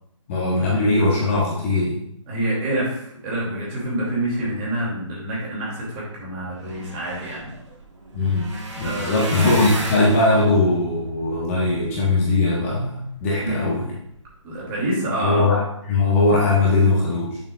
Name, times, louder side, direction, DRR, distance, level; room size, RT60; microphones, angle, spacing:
voice 1, 0.3-2.0 8.1-8.5 8.8-13.8 15.2-17.4, left 2 dB, 25° left, -4 dB, 1.5 m, -20 dB
voice 2, 2.3-7.5 8.8-9.4 13.4-13.9 14.4-15.5, right 1 dB, 20° right, -5 dB, 2.9 m, -27 dB
sound 1, 6.3-12.7 13.2-13.7 14.1-14.3 14.6-14.7, right 2 dB, 60° right, 2.0 m, -34 dB
8.9 x 6.9 x 2.5 m, 0.73 s
hypercardioid pair, 155°, 17 cm